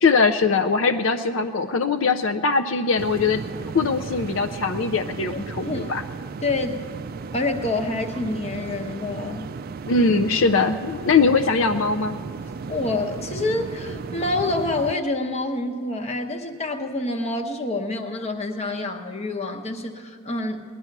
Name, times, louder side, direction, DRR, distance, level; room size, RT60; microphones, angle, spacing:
voice 1, 0.0-6.0 9.9-12.2, left 4 dB, 70° left, 8 dB, 0.5 m, -21 dB
sound 1, 3.0-14.9, right 4 dB, 45° right, 0.3 m, -35 dB
voice 2, 5.6-6.0 6.4-6.8 7.3-9.5 12.7-20.6, left 2 dB, 30° left, 4 dB, 0.9 m, -27 dB
19.5 x 11.0 x 5.9 m, 2.1 s
head